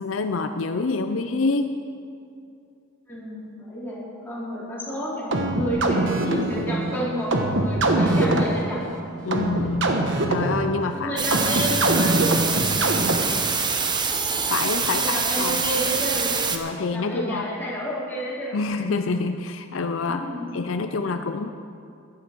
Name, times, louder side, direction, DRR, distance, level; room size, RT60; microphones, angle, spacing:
voice 1, 0.0-1.7 9.2-9.9 10.3-11.2 14.5-15.6 16.5-17.5 18.5-20.2 20.5-21.5, left 3 dB, 70° left, 7 dB, 0.5 m, -26 dB
voice 2, 3.1-8.9 11.0-12.1 12.5-12.9 14.8-16.3 16.9-18.6 20.0-20.5, equal, 10° left, -9 dB, 4.1 m, -30 dB
sound 1, 5.3-13.5, right 2 dB, 65° right, 1.2 m, -24 dB
sound 2, 11.2-16.6, right 5 dB, 20° right, 0.8 m, -25 dB
15.0 x 12.0 x 4.5 m, 2.4 s
head